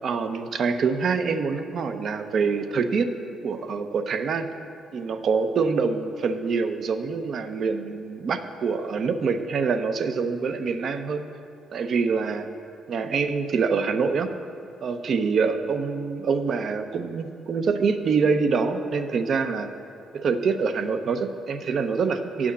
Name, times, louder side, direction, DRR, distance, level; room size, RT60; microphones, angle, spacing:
voice 1, 0.0-3.1 3.4-4.5 4.9-11.3 11.7-12.5 12.9-14.3 14.8-19.7 20.1-22.5, right 5 dB, 60° right, 8 dB, 0.6 m, -25 dB
8.5 x 6.1 x 8.1 m, 2.5 s
cardioid pair, 90°, 0 cm